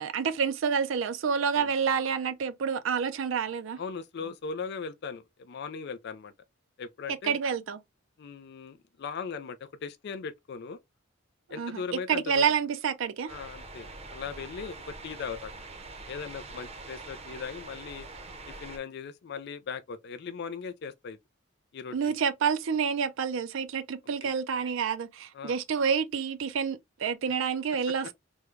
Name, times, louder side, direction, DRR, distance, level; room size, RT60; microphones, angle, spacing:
voice 1, 0.0-3.8 7.2-7.8 11.6-13.3 21.9-28.1, right 6 dB, 70° right, 0.4 m, -28 dB
voice 2, 3.8-6.3 6.8-7.4 8.2-10.8 11.5-12.4 13.3-15.7 16.1-18.1 18.5-21.2 21.7-22.1 24.2-24.3 25.3-25.6, left 5 dB, 55° left, 0.4 m, -39 dB
sound 1, 13.3-18.8, right 3 dB, 30° right, 0.7 m, -44 dB
3.6 x 2.2 x 3.0 m
head